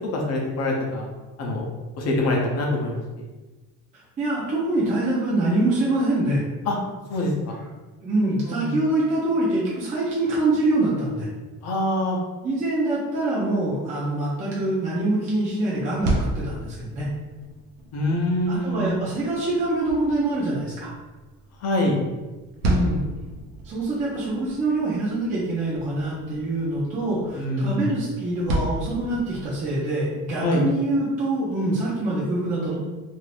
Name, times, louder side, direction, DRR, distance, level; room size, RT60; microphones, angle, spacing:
voice 1, 0.1-1.1 1.4-1.6 2.0-3.2 6.7-6.8 7.1-7.5 8.5-8.8 11.6-12.2 17.9-19.0 21.6-22.0 27.3-27.9 30.4-30.6, left 1 dB, 50° left, -1 dB, 0.7 m, -24 dB
voice 2, 3.9-6.4 8.0-11.3 12.4-17.1 18.5-20.9 22.6-23.0 23.6-32.8, right 2 dB, 25° right, -7 dB, 0.5 m, -25 dB
sound 1, 15.7-29.7, right 1 dB, 80° right, 0.7 m, -33 dB
2.6 x 2.4 x 3.2 m, 1.2 s
cardioid pair, 175°, 34 cm